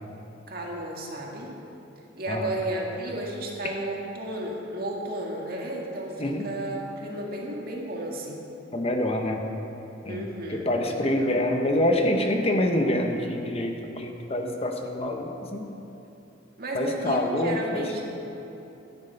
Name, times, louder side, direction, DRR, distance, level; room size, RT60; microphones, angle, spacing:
voice 1, 0.5-1.5 2.2-6.1 6.4-8.4 10.1-11.4 16.6-18.0, right 1 dB, 50° right, -1 dB, 2.0 m, -33 dB
voice 2, 8.7-9.4 10.0-15.7 16.7-18.0, left 1 dB, 30° left, 3 dB, 0.9 m, -26 dB
13.0 x 9.9 x 5.7 m, 3.0 s
head